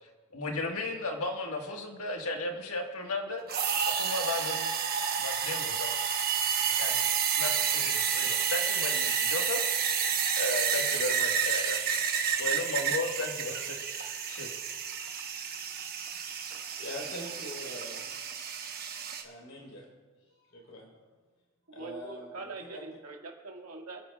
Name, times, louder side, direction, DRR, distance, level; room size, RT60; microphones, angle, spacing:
voice 1, 0.3-3.6 4.0-4.7 5.2-5.9 6.7-7.0 7.4-9.6 10.4-11.8 12.4-14.5, left 2 dB, 80° left, 2 dB, 1.6 m, -35 dB
sound 1, 3.5-19.2, right 7 dB, 45° right, 1.0 m, -30 dB
voice 2, 16.2-18.0 19.2-19.9 20.2-20.9 21.7-22.8, left 1 dB, 60° left, -2 dB, 3.8 m, -44 dB
voice 3, 21.7-24.0, right 3 dB, 85° right, 0 dB, 2.0 m, -43 dB
28.5 x 10.0 x 2.4 m, 1.4 s
head